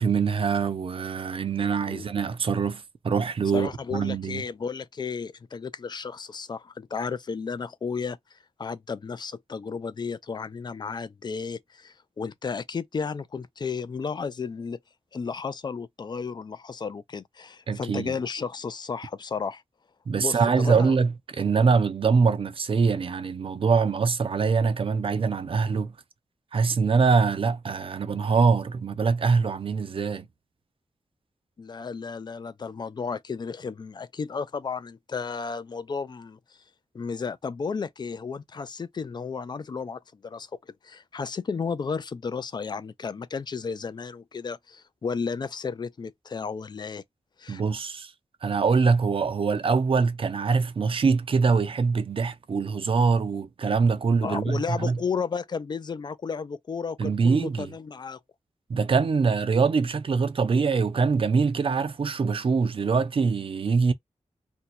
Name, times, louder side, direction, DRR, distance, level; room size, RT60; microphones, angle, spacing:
voice 1, 0.0-4.4 17.7-18.1 20.1-25.9 26.5-30.2 47.5-48.1 48.4-55.0 57.0-57.7 58.7-63.9, right 5 dB, 50° right, 0.5 m, -24 dB
voice 2, 3.5-14.8 15.1-19.6 20.2-20.9 31.6-36.4 36.9-40.5 40.8-47.0 47.4-47.6 54.2-58.2, left 5 dB, 40° left, 0.4 m, -33 dB
2.7 x 2.2 x 4.1 m
wide cardioid pair, 150°, 12 cm